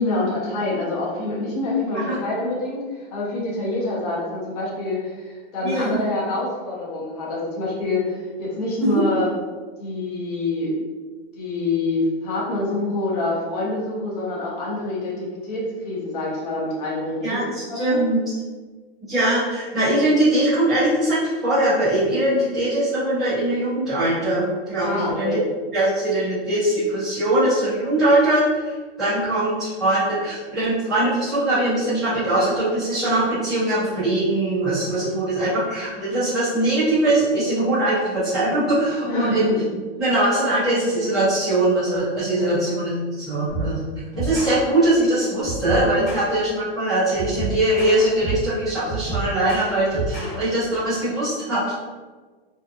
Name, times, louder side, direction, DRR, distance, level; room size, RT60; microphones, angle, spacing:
voice 1, 0.0-9.4 9.8-10.7 11.3-17.4 17.7-18.0 24.8-25.4 34.9-35.2 39.1-39.7 42.4-42.6 50.2-50.4, left 2 dB, 40° left, -5 dB, 0.6 m, -26 dB
voice 2, 5.6-6.0 8.8-9.0 17.2-18.4 19.1-25.4 25.7-39.5 40.0-43.8 44.2-51.7, right 1 dB, ahead, -19 dB, 0.3 m, -21 dB
sound 1, 43.5-43.8 44.1-44.6 45.4-46.3 47.1-48.5 48.8-50.4, right 3 dB, 20° left, 1.1 m, -29 dB
2.6 x 2.2 x 2.4 m, 1.4 s
supercardioid pair, 180°, 31 cm